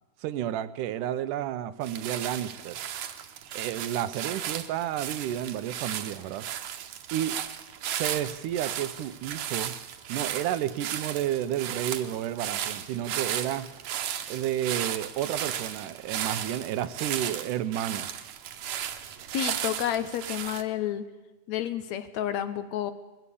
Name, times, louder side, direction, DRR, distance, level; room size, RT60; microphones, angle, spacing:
voice 1, 0.2-2.8 3.5-6.5 7.1-7.4 7.9-9.8 10.1-13.7 14.3-18.1, right 11 dB, 90° right, 13 dB, 2.3 m, -31 dB
sound 1, 1.8-20.6, right 10 dB, 70° right, 2.2 m, -35 dB
voice 2, 19.3-21.1 21.5-22.9, left 11 dB, 70° left, 11 dB, 2.1 m, -30 dB
20.5 x 15.0 x 8.4 m, 1.1 s
omnidirectional pair, 3.5 m